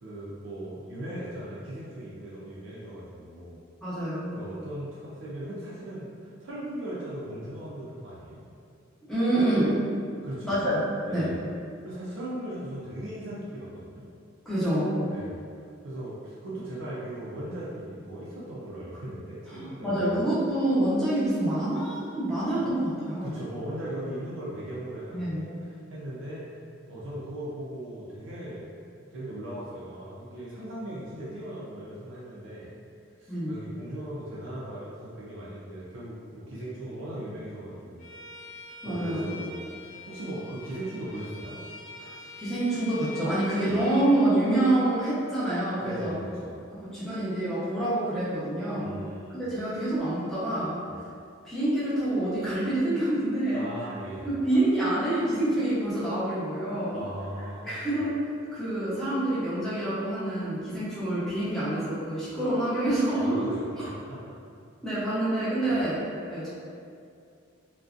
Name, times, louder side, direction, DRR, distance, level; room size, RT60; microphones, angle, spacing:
voice 1, 0.0-3.6 4.3-8.4 10.2-10.5 11.1-11.4 11.8-14.1 15.1-15.4 15.8-20.3 22.6-22.7 23.2-26.6 26.9-28.7 29.1-32.7 33.2-38.1 38.8-41.6 43.7-43.8 45.8-46.6 48.8-49.5 50.9-51.0 53.5-54.3 56.9-57.9 63.1-64.2 65.7-65.8, right 1 dB, 75° right, -8 dB, 0.4 m, -38 dB
voice 2, 3.8-4.3 9.1-9.7 10.4-10.8 11.1-11.3 14.5-15.1 19.5-23.4 25.1-25.4 33.3-33.6 38.8-39.3 42.0-46.2 46.7-48.9 49.3-50.8 51.4-53.6 54.2-57.0 57.6-58.2 58.5-63.5 64.8-66.0 66.3-66.5, right 1 dB, ahead, -12 dB, 0.7 m, -27 dB
Bowed string instrument, 38.0-44.3, left 2 dB, 40° left, 0.6 m, -44 dB
2.5 x 2.2 x 2.4 m, 2.4 s
head